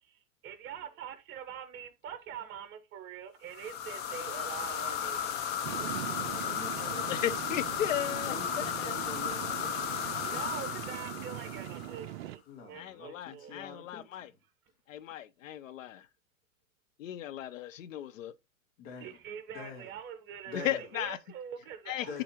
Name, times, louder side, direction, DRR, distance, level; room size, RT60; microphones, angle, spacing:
voice 1, 0.1-5.3 5.7-6.0 10.2-13.6 19.0-22.2, right 8 dB, 25° right, 1.2 m, -44 dB
sound 1, 3.5-12.1, left 8 dB, 25° left, 0.6 m, -35 dB
sound 2, 5.6-12.4, right 14 dB, 50° right, 0.5 m, -42 dB
voice 2, 6.2-7.4 8.0-9.9 12.5-14.4 18.8-19.2 19.5-19.9 20.5-20.9 22.0-22.2, left 4 dB, 50° left, 2.3 m, -46 dB
voice 3, 7.1-9.0 12.8-14.3 14.9-16.1 17.0-18.3 20.5-21.2 21.9-22.2, left 12 dB, 70° left, 0.7 m, -36 dB
9.9 x 3.9 x 3.0 m
hypercardioid pair, 115°, 41 cm